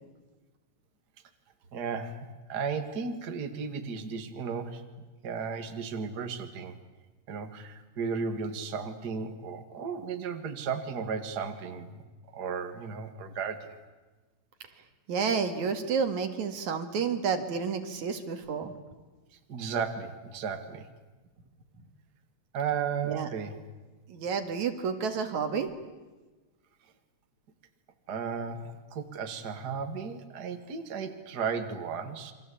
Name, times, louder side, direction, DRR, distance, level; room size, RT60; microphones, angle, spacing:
voice 1, 1.7-4.8 5.2-6.8 7.3-12.0 12.3-13.7 19.5-20.9 22.5-23.6 28.1-32.3, right 6 dB, 35° right, 7 dB, 2.2 m, -34 dB
voice 2, 15.1-18.7 23.1-23.3 24.1-25.7, right 6 dB, 75° right, 7 dB, 3.4 m, -30 dB
29.0 x 24.0 x 8.5 m, 1.2 s
omnidirectional pair, 3.4 m